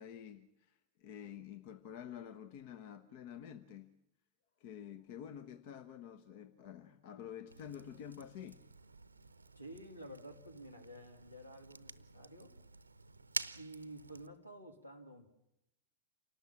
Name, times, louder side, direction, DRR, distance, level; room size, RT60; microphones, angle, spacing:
voice 1, 0.0-3.9 4.6-8.7, left 9 dB, 50° left, 1.1 m, -49 dB
Fire, 7.5-14.3, right 3 dB, 80° right, 0.8 m, -48 dB
voice 2, 9.5-12.5 13.5-15.3, right 1 dB, 90° left, 2.8 m, -51 dB
27.5 x 18.5 x 7.5 m
figure-of-eight pair, 90°, 0 cm